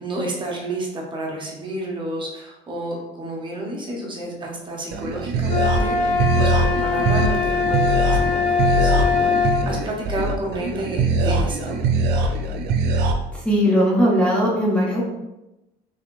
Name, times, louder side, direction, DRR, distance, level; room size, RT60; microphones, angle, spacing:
voice 1, 0.0-11.7, right 1 dB, 30° right, -2 dB, 0.9 m, -30 dB
sound 1, 4.9-13.1, right 2 dB, 75° right, 0.5 m, -22 dB
sound 2, 5.5-9.6, left 6 dB, 80° left, 0.8 m, -22 dB
voice 2, 13.3-15.0, equal, 5° left, -5 dB, 0.7 m, -19 dB
3.5 x 3.4 x 2.5 m, 0.97 s
cardioid pair, 110°, 17 cm